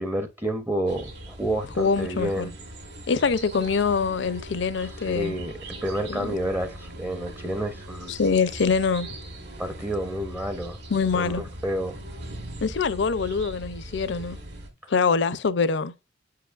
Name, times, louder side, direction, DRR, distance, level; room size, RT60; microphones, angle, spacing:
voice 1, 0.0-2.5 4.8-8.2 9.6-10.8 11.1-12.0 14.8-14.9, right 1 dB, 10° right, 0.5 m, -30 dB
sound 1, 0.9-14.7, right 1 dB, 55° right, 1.9 m, -40 dB
voice 2, 1.8-2.5 3.1-5.3 6.1-6.3 8.1-9.1 10.9-11.4 12.6-14.4 14.9-15.9, left 5 dB, 60° left, 0.5 m, -24 dB
8.6 x 4.7 x 2.4 m
head